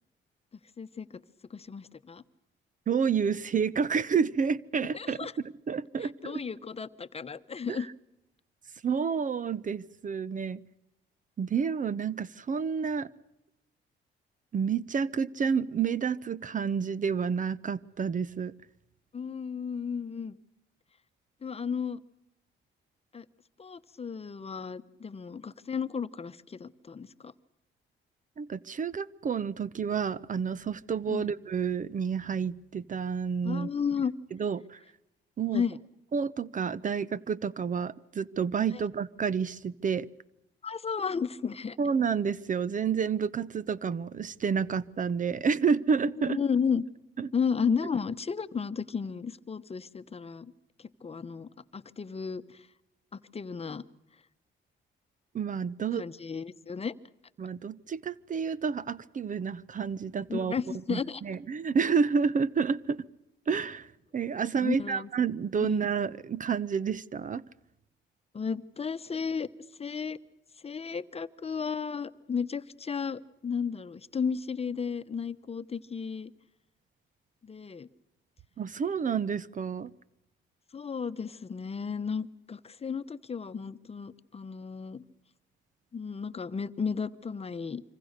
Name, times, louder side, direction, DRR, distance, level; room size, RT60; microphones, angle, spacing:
voice 1, 0.8-1.1 1.5-2.2 4.9-5.3 6.0-7.9 19.1-20.4 21.4-22.0 23.1-23.2 23.6-27.3 31.1-31.3 33.4-34.1 35.5-35.8 38.7-38.8 40.6-41.8 46.2-46.8 47.3-50.5 51.0-52.6 53.3-53.8 56.0-56.9 60.3-61.2 64.6-65.1 65.6-65.8 68.3-69.5 69.8-70.2 70.6-76.3 77.4-77.9 80.7-85.0 85.9-87.8, left 6 dB, 30° left, 13 dB, 1.0 m, -33 dB
voice 2, 2.9-5.3 5.7-6.4 7.7-7.9 8.8-10.6 11.4-13.1 14.5-18.5 28.4-33.7 34.3-34.8 35.4-35.6 36.1-40.1 41.8-46.4 47.2-47.3 55.3-56.1 57.4-60.5 60.9-63.1 63.5-63.9 64.1-67.4 78.6-79.9, right 6 dB, 40° right, 19 dB, 0.8 m, -29 dB
26.0 x 25.0 x 6.7 m, 0.85 s
cardioid pair, 90°, 20 cm